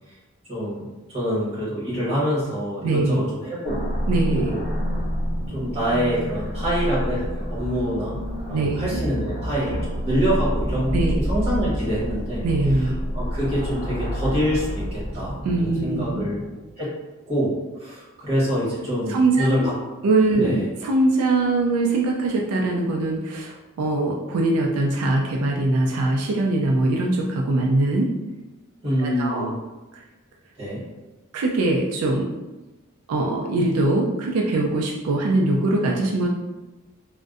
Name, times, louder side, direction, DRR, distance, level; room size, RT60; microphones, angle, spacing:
voice 1, 0.5-3.9 4.3-4.6 5.5-8.2 8.5-11.0 11.3-12.4 12.8-16.4 16.8-16.9 17.3-19.7 20.3-20.7 28.8-29.5 30.6-30.8, equal, 30° right, -8 dB, 1.1 m, -26 dB
voice 2, 2.8-3.3 4.1-4.5 8.5-9.0 10.9-11.2 12.4-13.0 15.4-16.2 19.1-19.5 20.0-28.1 29.0-29.5 31.3-32.3 33.1-36.3, right 2 dB, 85° right, 0 dB, 0.3 m, -22 dB
sound 1, 3.7-16.7, equal, 10° right, 1.3 m, -28 dB
2.5 x 2.1 x 2.3 m, 1.1 s
head